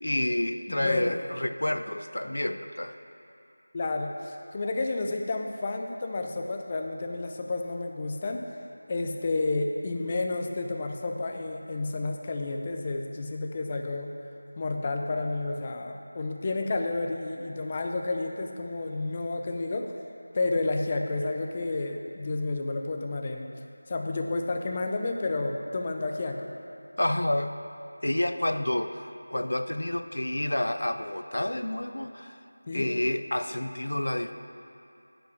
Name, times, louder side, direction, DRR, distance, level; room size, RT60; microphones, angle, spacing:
voice 1, 0.0-3.0 27.0-27.5 28.0-32.4 32.7-34.3, left 1 dB, 80° left, 10 dB, 0.5 m, -29 dB
voice 2, 0.7-1.2 3.7-8.5 8.9-14.1 14.6-20.0 20.3-23.5 23.9-26.5 32.7-32.9, left 2 dB, 20° left, 3 dB, 0.5 m, -31 dB
10.0 x 5.5 x 6.1 m, 2.7 s
figure-of-eight pair, 175°, 0 cm